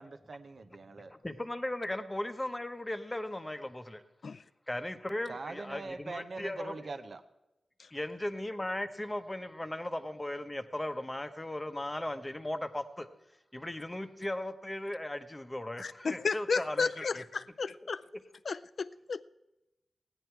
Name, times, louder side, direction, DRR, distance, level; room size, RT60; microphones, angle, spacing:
voice 1, 0.0-1.1 5.3-7.2, right 3 dB, 55° right, 0.8 m, -42 dB
voice 2, 0.7-4.0 4.7-6.9 7.9-13.1 13.5-17.2 17.8-17.9, left 1 dB, 15° left, 0.9 m, -37 dB
voice 3, 15.8-18.0 18.5-19.2, left 4 dB, 60° left, 0.4 m, -33 dB
16.5 x 9.9 x 4.6 m
wide cardioid pair, 95°, 0 cm